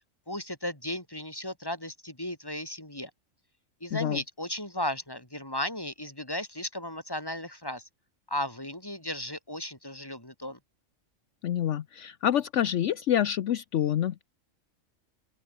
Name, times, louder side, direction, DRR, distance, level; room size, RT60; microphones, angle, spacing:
voice 1, 0.3-3.1 3.8-7.9 8.3-10.6, left 1 dB, 15° left, 4.3 m, -35 dB
voice 2, 11.4-14.2, left 10 dB, 70° left, 1.0 m, -27 dB
open air
omnidirectional pair, 1.4 m